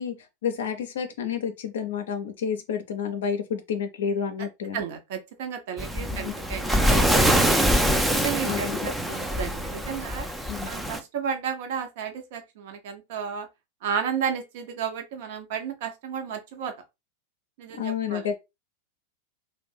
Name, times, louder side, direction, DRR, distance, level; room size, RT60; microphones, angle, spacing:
voice 1, 0.0-4.8 6.1-6.4 8.4-8.9 10.5-10.7 17.7-18.4, left 7 dB, 60° left, 0.5 m, -30 dB
voice 2, 4.7-7.5 7.9-10.3 10.6-13.5 13.8-16.7 17.6-18.3, right 7 dB, 50° right, 0.7 m, -33 dB
Waves surf, 5.8-11.0, equal, 5° right, 0.4 m, -24 dB
2.6 x 2.2 x 3.9 m
figure-of-eight pair, 90°, 0 cm